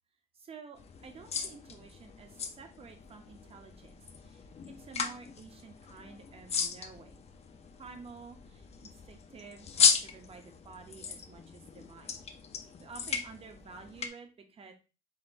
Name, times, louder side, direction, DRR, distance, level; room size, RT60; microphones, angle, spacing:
voice 1, 0.3-7.2 7.8-9.7 10.0-12.2 12.8-14.7, right 5 dB, 35° right, 6 dB, 0.8 m, -51 dB
sound 1, 0.8-14.1, left 6 dB, 40° left, 0.5 m, -35 dB
4.3 x 3.9 x 2.5 m, 0.30 s
cardioid pair, 140°, 16 cm